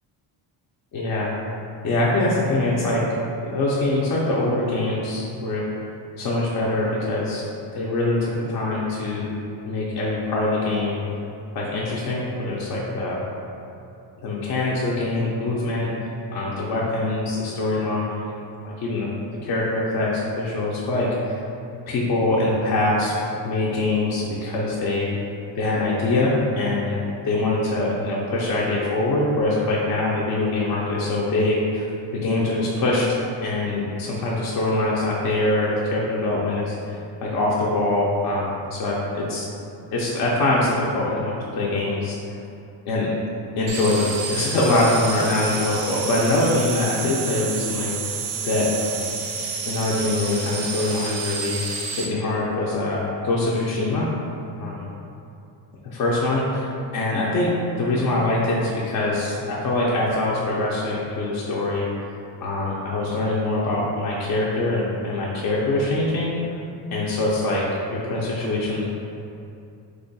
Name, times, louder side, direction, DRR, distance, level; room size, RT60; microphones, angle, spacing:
voice 1, 0.9-1.3 1.8-3.0 3.4-5.6 6.2-7.4 7.7-9.3 9.6-11.0 11.5-13.2 14.2-15.9 16.3-18.4 18.6-19.1 19.4-21.4 21.9-23.1 23.4-25.1 25.5-31.9 32.1-33.2 33.4-37.0 37.2-39.5 39.9-42.2 42.9-43.1 43.6-48.1 48.4-49.1 49.7-51.6 51.9-54.1 54.6-54.9 55.8-61.9 62.4-66.3 66.9-68.8, left 2 dB, 45° left, -5 dB, 0.5 m, -23 dB
sound 1, 43.7-52.0, right 5 dB, 90° right, 0.7 m, -30 dB
3.0 x 2.2 x 3.9 m, 2.6 s
cardioid pair, 130°, 46 cm